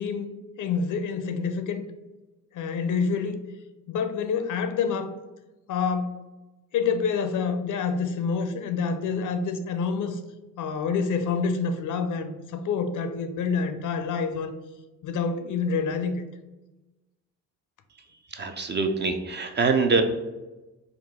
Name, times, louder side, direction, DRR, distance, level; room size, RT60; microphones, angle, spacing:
voice 1, 0.0-1.9 2.5-3.4 3.9-5.1 5.7-6.2 6.7-10.2 10.6-14.5 15.0-16.2, left 5 dB, 55° left, 9 dB, 0.5 m, -27 dB
voice 2, 18.3-20.0, right 4 dB, 30° right, 6 dB, 0.4 m, -24 dB
3.7 x 2.3 x 3.5 m, 1.1 s
hypercardioid pair, 45°, 38 cm